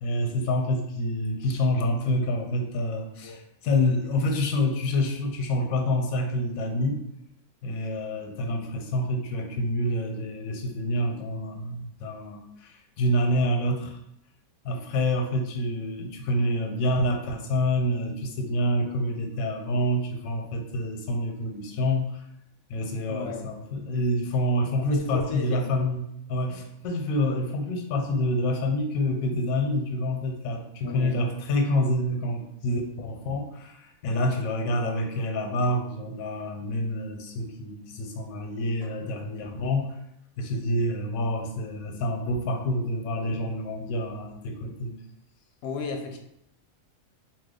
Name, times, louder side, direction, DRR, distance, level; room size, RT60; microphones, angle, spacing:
voice 1, 0.0-7.0 7.6-14.0 14.6-22.2 22.7-26.0 26.3-40.0 40.4-45.0, left 1 dB, 90° left, 4 dB, 1.0 m, -27 dB
voice 2, 23.1-23.5 24.8-25.8 30.8-31.3 45.6-46.2, left 4 dB, 65° left, 3 dB, 0.7 m, -34 dB
2.8 x 2.2 x 3.6 m, 0.77 s
omnidirectional pair, 1.4 m